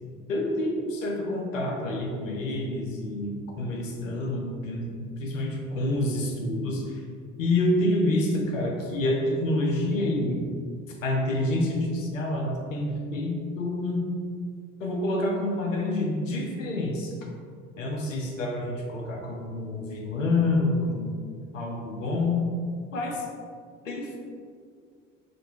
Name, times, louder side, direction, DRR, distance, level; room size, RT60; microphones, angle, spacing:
voice 1, 0.3-4.9 5.2-7.0 7.4-10.4 11.0-14.0 14.8-17.1 17.8-21.1 21.5-22.4 22.9-23.3 23.8-24.2, left 1 dB, 80° left, 1 dB, 0.7 m, -27 dB
6.2 x 2.5 x 2.9 m, 2.1 s
figure-of-eight pair, 50°, 38 cm